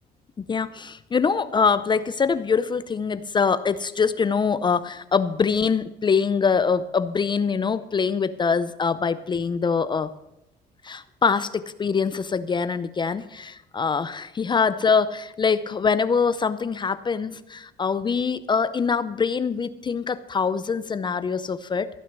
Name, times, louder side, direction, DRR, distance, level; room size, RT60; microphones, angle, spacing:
voice 1, 0.4-10.1 10.8-22.0, left 5 dB, 25° left, 14 dB, 0.6 m, -24 dB
15.0 x 6.5 x 8.0 m, 0.86 s
cardioid pair, 110°, 17 cm